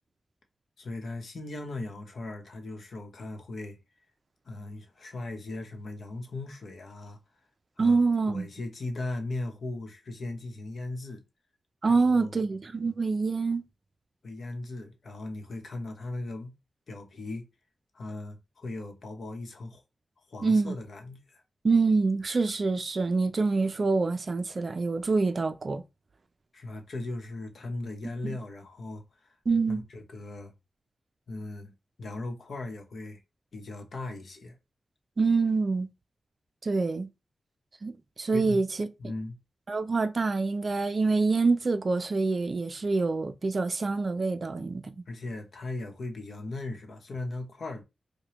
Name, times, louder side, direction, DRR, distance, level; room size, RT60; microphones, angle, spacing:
voice 1, 0.8-3.8 4.4-7.2 7.8-8.0 8.3-11.2 11.9-12.3 14.2-16.5 16.9-17.5 17.9-19.8 20.3-21.4 26.5-29.4 29.7-30.5 31.3-31.7 32.0-33.2 33.5-34.6 38.3-38.6 39.0-39.4 45.1-47.8, left 2 dB, 65° left, 0.9 m, -38 dB
voice 2, 7.8-8.5 11.8-13.6 20.4-20.7 21.6-25.8 28.2-28.4 29.5-29.8 35.2-35.9 36.6-37.1 37.8-38.9 39.7-44.9, right 4 dB, 45° right, 0.4 m, -26 dB
4.9 x 2.2 x 2.9 m
wide cardioid pair, 120°, 0 cm